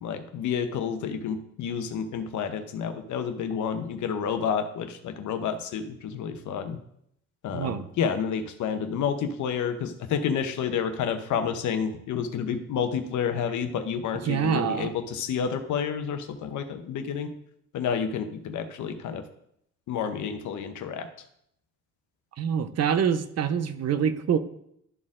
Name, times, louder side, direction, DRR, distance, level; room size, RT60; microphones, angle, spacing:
voice 1, 0.0-6.8 7.4-17.3 17.7-19.2 19.9-21.1, left 7 dB, 75° left, 7 dB, 1.0 m, -30 dB
voice 2, 7.5-7.8 14.2-14.9 22.4-24.4, right 8 dB, 55° right, 12 dB, 0.7 m, -25 dB
12.5 x 4.3 x 3.7 m, 0.72 s
cardioid pair, 90°, 30 cm